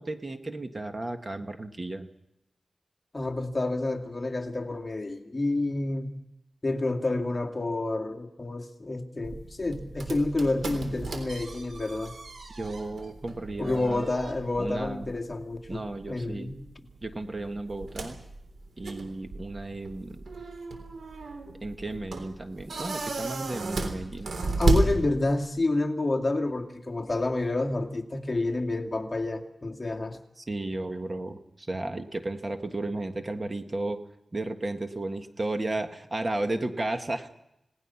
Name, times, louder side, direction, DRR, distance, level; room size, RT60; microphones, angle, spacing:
voice 1, 0.0-2.1 12.5-14.0 14.6-15.1 15.7-16.5 17.0-18.2 18.8-20.2 21.6-24.3 30.5-34.0 34.3-37.3, right 2 dB, 30° right, 6 dB, 1.6 m, -34 dB
voice 2, 3.1-6.2 6.6-12.1 13.6-16.7 24.4-30.2, left 2 dB, 30° left, 2 dB, 2.3 m, -29 dB
sound 1, 9.2-25.6, right 3 dB, 85° right, 3.6 m, -34 dB
29.0 x 18.5 x 5.8 m, 0.85 s
wide cardioid pair, 85°, 0 cm